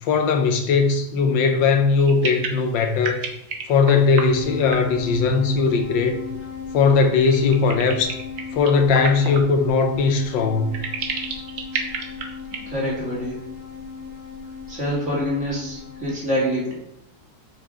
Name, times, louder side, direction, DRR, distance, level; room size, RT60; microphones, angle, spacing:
voice 1, 0.0-3.2 3.7-6.2 6.7-8.2 8.5-10.8, left 4 dB, 80° left, 1.6 m, -19 dB
sound 1, 2.0-4.3 4.7-5.0 7.2-9.4 10.0-10.1 10.7-12.6 12.9-13.0 13.3-13.4, right 5 dB, 90° right, 1.8 m, -30 dB
sound 2, 4.2-16.1, left 5 dB, 15° left, 3.1 m, -36 dB
voice 2, 12.7-13.4 14.7-16.7, equal, 40° right, 2.9 m, -26 dB
7.9 x 6.2 x 3.8 m
omnidirectional pair, 2.0 m